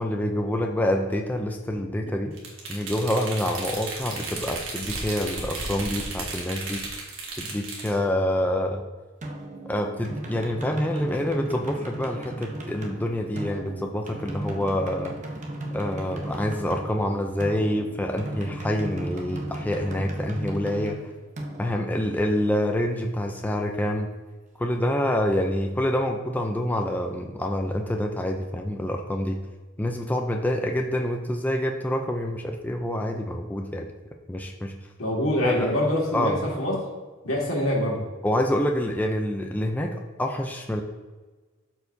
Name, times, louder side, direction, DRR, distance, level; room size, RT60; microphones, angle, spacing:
voice 1, 0.0-2.3 2.7-6.8 7.4-8.8 9.7-15.2 15.7-21.0 21.6-24.1 24.6-29.4 29.8-33.9 34.3-34.7 35.4-35.7 36.1-36.4 38.2-40.8, left 1 dB, 10° left, 3 dB, 0.4 m, -27 dB
sound 1, 2.4-7.9, right 3 dB, 65° right, 1.5 m, -34 dB
sound 2, 9.2-22.8, right 1 dB, 35° right, 0.9 m, -36 dB
voice 2, 35.0-36.9 37.2-38.0, left 1 dB, 80° left, -2 dB, 1.9 m, -25 dB
12.5 x 4.6 x 2.7 m, 1.3 s
head